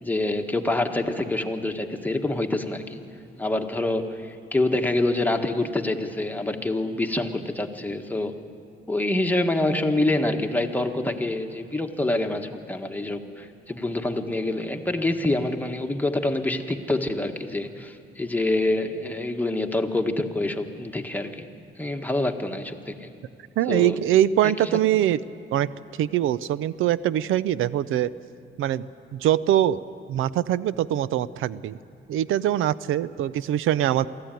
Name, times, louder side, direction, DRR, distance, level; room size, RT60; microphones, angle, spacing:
voice 1, 0.0-3.0 3.4-8.4 8.9-21.5 21.8-23.1 23.7-24.0 24.4-24.5, left 2 dB, 10° left, 4 dB, 1.5 m, -26 dB
voice 2, 23.6-25.2 25.5-25.7 26.0-28.1 28.6-28.8 29.1-29.8 30.1-31.8 32.1-34.1, right 12 dB, 90° right, 17 dB, 0.5 m, -23 dB
23.5 x 15.0 x 9.1 m, 2.4 s
cardioid pair, 85°, 20 cm